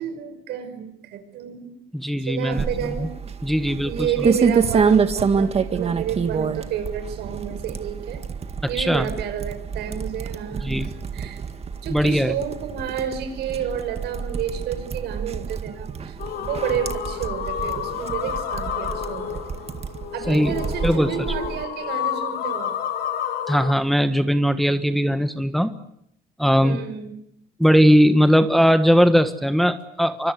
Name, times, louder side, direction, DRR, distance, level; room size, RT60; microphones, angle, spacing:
voice 1, 0.0-1.8 2.2-3.1 3.9-8.2 8.6-11.4 11.8-19.6 20.1-22.7 26.6-27.2, right 8 dB, 80° right, 9 dB, 5.6 m, -30 dB
voice 2, 1.9-2.6 3.0-3.1 3.4-3.9 8.8-9.1 10.6-10.9 11.9-12.3 20.3-20.5 20.8-21.1 23.5-25.7 26.4-26.8 27.6-30.3, equal, ahead, 10 dB, 1.4 m, -19 dB
sound 1, 2.5-21.6, right 5 dB, 35° right, 1.9 m, -27 dB
sound 2, 16.2-23.7, left 9 dB, 65° left, 3.9 m, -30 dB
25.0 x 25.0 x 8.0 m, 0.75 s
cardioid pair, 110°, 17 cm